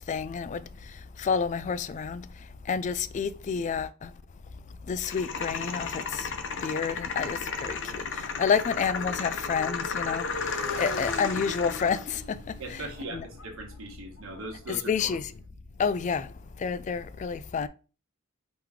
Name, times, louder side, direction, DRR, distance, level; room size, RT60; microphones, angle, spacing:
voice 1, 0.1-2.3 2.7-4.1 4.9-6.3 6.6-12.8 13.1-13.3 14.7-15.3 15.8-16.3 16.6-17.7, left 6 dB, 35° left, 0.3 m, -30 dB
sound 1, 5.0-12.0, left 5 dB, 60° left, 0.7 m, -34 dB
Motorcycle, 5.3-15.2, left 2 dB, 80° left, 1.0 m, -42 dB
voice 2, 12.6-15.1, right 2 dB, 70° right, 1.4 m, -40 dB
4.9 x 3.0 x 3.6 m
head